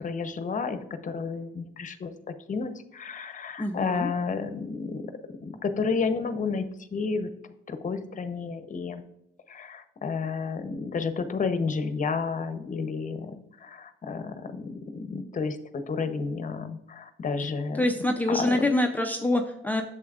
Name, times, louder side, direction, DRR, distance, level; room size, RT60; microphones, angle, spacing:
voice 1, 0.0-2.1 2.5-5.1 5.4-6.7 6.9-7.3 7.7-9.1 9.5-13.3 13.6-17.8 18.3-18.7, left 4 dB, 40° left, 10 dB, 0.8 m, -31 dB
voice 2, 3.6-4.1 17.8-19.8, left 1 dB, 10° left, 3 dB, 0.5 m, -25 dB
8.3 x 7.1 x 2.4 m, 0.82 s
cardioid pair, 90°, 20 cm